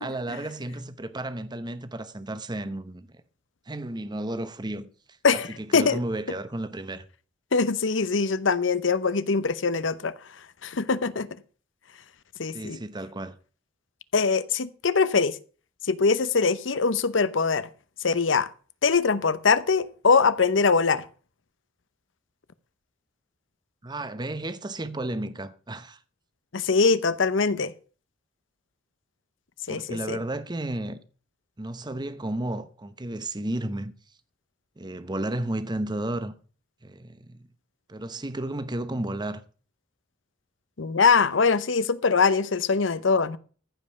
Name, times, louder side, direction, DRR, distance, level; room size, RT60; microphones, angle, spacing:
voice 1, 0.0-3.1 3.7-4.9 5.3-5.4 5.7-7.0 12.5-13.3 23.8-26.0 29.7-31.0 31.6-33.9 34.8-36.3 36.8-37.4 37.9-39.4, right 1 dB, 20° right, 0.8 m, -32 dB
voice 2, 5.2-6.0 7.5-10.1 10.6-11.3 12.4-12.8 14.1-15.4 15.9-17.7 18.0-18.5 18.8-21.0 26.5-27.7 29.7-30.2 40.8-43.4, left 4 dB, 70° left, 0.8 m, -22 dB
14.5 x 5.4 x 6.9 m
head